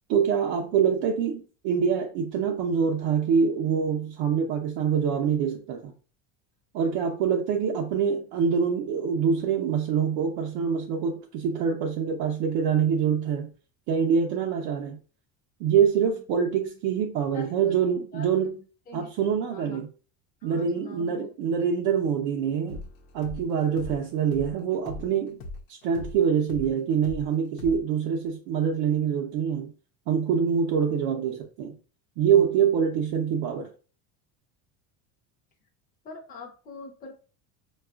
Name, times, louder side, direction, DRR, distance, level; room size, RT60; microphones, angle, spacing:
voice 1, 0.1-5.9 6.7-13.5 13.9-15.0 15.6-18.6 18.9-19.9 20.4-22.8 23.1-29.7 30.1-31.7 32.2-33.7, right 7 dB, 65° right, 0.7 m, -25 dB
voice 2, 17.3-18.3 18.9-19.1 19.5-19.8 20.4-21.3 36.0-37.1, left 4 dB, 20° left, 0.6 m, -43 dB
sound 1, 22.7-27.3 27.6-27.8, left 2 dB, 90° left, 0.8 m, -39 dB
4.2 x 2.4 x 2.3 m
cardioid pair, 130°, 43 cm